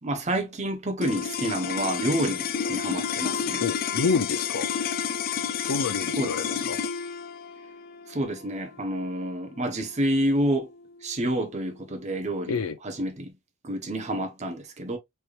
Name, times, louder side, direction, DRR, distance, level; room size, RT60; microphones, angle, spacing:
voice 1, 0.0-3.6 6.2-6.3 8.1-10.7 11.0-13.3 13.6-15.0, right 1 dB, 35° right, 1.0 m, -28 dB
sound 1, 1.0-11.4, left 7 dB, 45° left, 0.4 m, -31 dB
voice 2, 3.6-4.7 5.6-6.8 12.5-12.8, left 4 dB, 85° left, 0.6 m, -28 dB
4.5 x 3.2 x 2.4 m
head